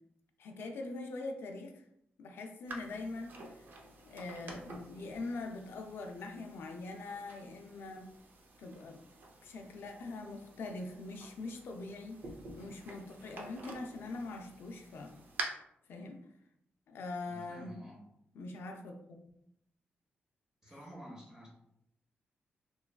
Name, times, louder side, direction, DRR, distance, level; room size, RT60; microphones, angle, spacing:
voice 1, 0.4-1.8 2.2-3.6 4.0-8.1 8.6-9.0 9.4-12.2 12.5-15.1 15.9-16.2 16.9-17.8 18.3-19.3, left 3 dB, 75° left, 4 dB, 0.3 m, -43 dB
sound 1, 2.7-15.4, right 3 dB, 50° right, 0.4 m, -49 dB
voice 2, 17.2-18.0 20.6-21.5, equal, 15° right, -3 dB, 0.7 m, -50 dB
3.0 x 2.3 x 2.2 m, 0.76 s
wide cardioid pair, 175°, 4 cm